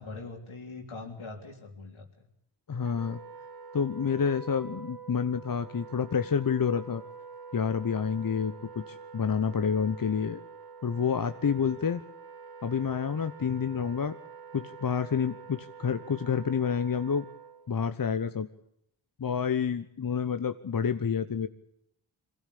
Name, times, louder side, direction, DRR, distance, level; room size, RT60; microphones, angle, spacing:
voice 1, 0.0-2.3 8.3-8.7, left 3 dB, 75° left, 2 dB, 3.7 m, -43 dB
voice 2, 2.7-3.2 3.7-7.0 7.5-10.4 10.8-12.0 12.6-14.2 14.5-17.3 17.7-18.5 19.2-21.5, left 6 dB, 45° left, 10 dB, 1.0 m, -29 dB
Wind instrument woodwind instrument, 2.8-17.7, right 5 dB, 50° right, 1.6 m, -46 dB
22.0 x 16.0 x 8.5 m, 0.77 s
cardioid pair, 45°, 49 cm